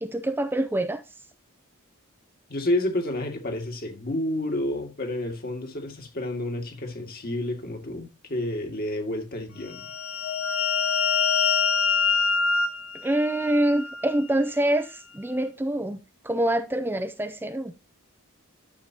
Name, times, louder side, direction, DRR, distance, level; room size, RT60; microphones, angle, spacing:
voice 1, 0.0-1.0 13.0-16.0 16.2-17.7, right 1 dB, 10° right, 0.5 m, -25 dB
voice 2, 2.5-9.9, left 1 dB, 45° left, 1.9 m, -30 dB
sound 1, 9.7-14.2, left 5 dB, 85° left, 1.3 m, -25 dB
12.0 x 7.0 x 2.9 m
head